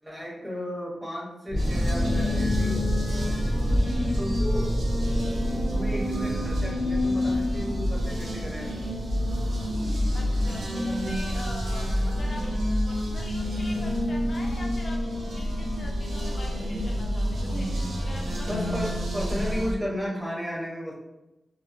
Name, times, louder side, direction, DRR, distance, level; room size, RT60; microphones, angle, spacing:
voice 1, 0.0-2.9 4.2-4.7 5.7-8.8 18.4-20.9, equal, 10° right, -4 dB, 0.7 m, -34 dB
sound 1, 1.5-14.0 14.3-14.7, equal, 55° right, 1.3 m, -31 dB
sound 2, 1.6-19.7, left 1 dB, 85° right, 0.6 m, -28 dB
voice 2, 3.8-4.2 10.1-17.7 18.0-18.7 19.2-19.6, left 2 dB, 45° left, 0 dB, 0.3 m, -44 dB
2.9 x 2.7 x 2.4 m, 0.97 s
wide cardioid pair, 165°, 0 cm